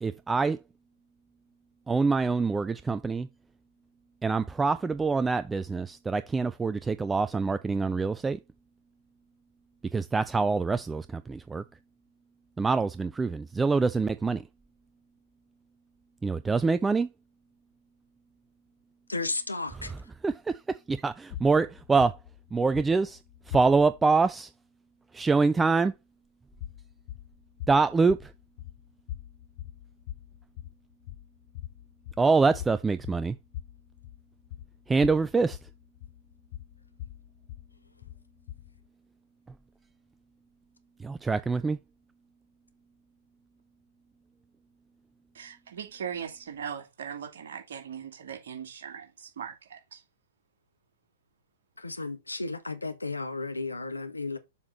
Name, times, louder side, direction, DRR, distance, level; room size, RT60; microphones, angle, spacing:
voice 1, 0.0-0.6 1.9-3.3 4.2-8.4 9.9-11.6 12.6-14.5 16.2-17.1 19.7-22.2 22.5-23.2 23.5-24.5 25.1-25.9 27.7-28.3 32.2-33.4 34.9-35.6 41.0-41.8, right 4 dB, 10° right, 0.3 m, -25 dB
voice 2, 19.1-19.9 51.8-54.4, left 3 dB, 85° left, 1.2 m, -33 dB
sound 1, 21.3-24.1 26.5-38.9, left 13 dB, 45° left, 0.5 m, -43 dB
voice 3, 45.3-50.0, right 8 dB, 55° right, 2.8 m, -39 dB
7.2 x 5.9 x 3.9 m
figure-of-eight pair, 110°, 0 cm